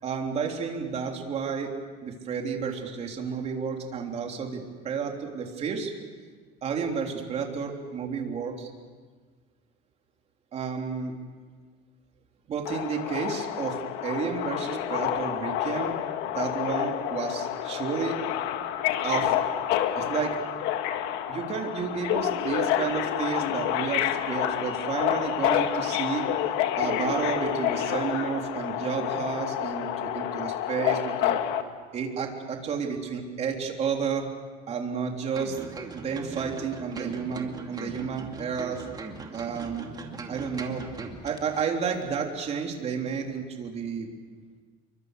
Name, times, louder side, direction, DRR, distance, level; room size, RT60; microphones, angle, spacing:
voice 1, 0.0-1.7 2.0-5.9 6.6-8.7 10.5-11.1 12.5-13.8 14.0-16.0 16.3-18.2 19.0-19.5 20.0-20.4 21.3-26.3 26.8-31.4 31.9-34.3 34.7-35.6 35.9-38.9 39.3-39.9 40.3-40.8 41.2-44.1, right 6 dB, 40° right, 2 dB, 3.6 m, -31 dB
Subway metro underground, 12.7-31.6, left 11 dB, 75° left, 1.7 m, -28 dB
sound 1, 35.3-41.6 41.9-42.1, right 4 dB, 25° right, 2.5 m, -40 dB
28.5 x 23.5 x 6.7 m, 1.5 s
cardioid pair, 145°, 17 cm